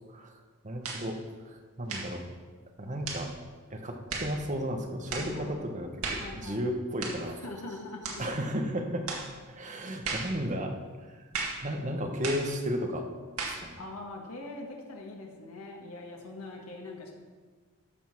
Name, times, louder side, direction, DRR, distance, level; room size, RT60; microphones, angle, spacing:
voice 1, 0.6-1.2 1.4-2.2 2.8-3.3 3.7-7.4 8.2-9.1 9.5-10.7 11.1-11.2 11.6-13.1 13.5-13.8, equal, 35° right, 4 dB, 1.1 m, -34 dB
sound 1, 0.8-1.1 1.9-2.2 3.0-3.3 4.1-4.3 5.1-5.3 6.0-6.3 7.0-7.3 8.0-8.3 9.1-9.3 10.0-10.3 11.3-11.6 12.2-12.5 13.4-13.6, right 4 dB, 80° right, 1.9 m, -35 dB
voice 2, 5.1-5.5 6.2-6.6 7.3-8.2 13.7-17.1, left 2 dB, 85° left, 0 dB, 1.6 m, -42 dB
13.5 x 5.4 x 6.0 m, 1.5 s
head